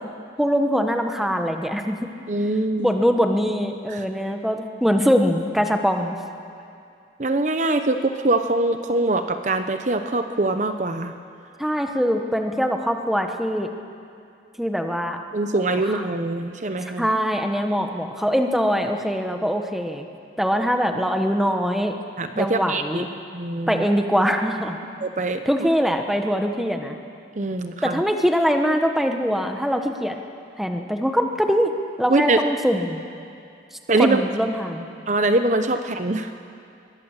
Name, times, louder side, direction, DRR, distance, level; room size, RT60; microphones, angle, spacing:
voice 1, 0.4-2.1 2.8-6.2 11.6-13.7 14.6-15.2 15.9-16.0 17.0-20.1 20.4-21.9 22.3-23.1 23.7-24.8 25.4-27.0 27.8-30.1 30.6-31.7 32.0-33.0 34.0-34.9, equal, ahead, 4 dB, 1.2 m, -22 dB
voice 2, 2.3-2.9 3.9-4.0 7.2-11.1 15.3-17.1 22.2-23.0 23.3-23.9 25.0-25.4 27.4-28.0 32.1-32.4 33.9-34.2 35.1-36.3, right 2 dB, 40° right, 8 dB, 0.8 m, -23 dB
24.0 x 20.5 x 7.4 m, 2.5 s
head